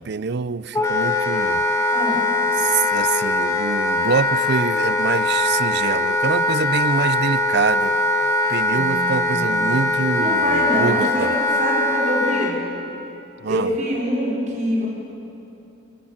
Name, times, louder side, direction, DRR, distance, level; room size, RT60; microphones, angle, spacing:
voice 1, 0.0-1.6 2.5-8.0 8.5-11.3 13.4-13.7, right 5 dB, 55° right, 17 dB, 0.5 m, -25 dB
Wind instrument woodwind instrument, 0.7-12.6, left 2 dB, 15° left, 1.8 m, -21 dB
voice 2, 8.7-9.6 10.2-12.6 13.5-14.9, equal, 40° right, -3 dB, 5.2 m, -25 dB
29.0 x 16.5 x 7.3 m, 2.9 s
head